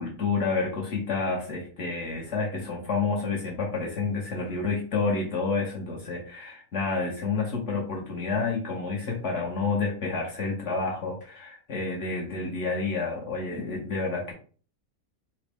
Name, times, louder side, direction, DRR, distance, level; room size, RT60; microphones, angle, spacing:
voice 1, 0.0-14.3, left 4 dB, 60° left, -2 dB, 1.0 m, -29 dB
3.8 x 2.0 x 3.3 m, 0.41 s
omnidirectional pair, 1.5 m